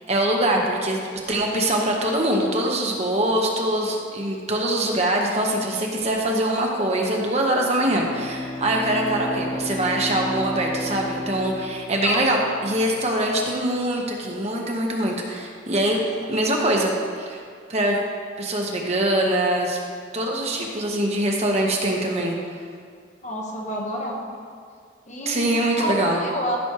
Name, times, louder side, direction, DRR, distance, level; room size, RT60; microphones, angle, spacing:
voice 1, 0.1-1.0 1.3-16.0 16.3-17.4 17.7-18.0 18.4-19.8 20.1-22.4 25.3-26.2, right 1 dB, 35° right, 0 dB, 1.0 m, -23 dB
Bowed string instrument, 7.8-13.0, left 1 dB, 15° left, 0.4 m, -33 dB
voice 2, 12.0-12.5 23.2-24.2 25.1-26.6, equal, 35° left, -1 dB, 1.1 m, -29 dB
15.0 x 6.1 x 3.0 m, 2.1 s
head